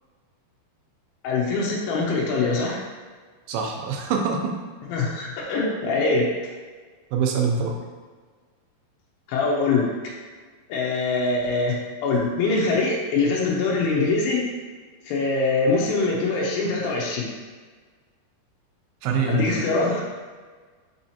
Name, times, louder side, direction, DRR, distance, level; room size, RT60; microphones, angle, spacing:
voice 1, 1.2-2.8 4.9-6.3 9.3-9.9 10.7-14.4 15.1-17.3 19.3-20.0, left 3 dB, 80° left, -3 dB, 2.2 m, -23 dB
voice 2, 3.5-4.5 7.1-7.7 19.0-19.6, right 5 dB, 85° right, 1 dB, 2.6 m, -24 dB
6.2 x 2.9 x 2.7 m, 1.5 s
omnidirectional pair, 4.7 m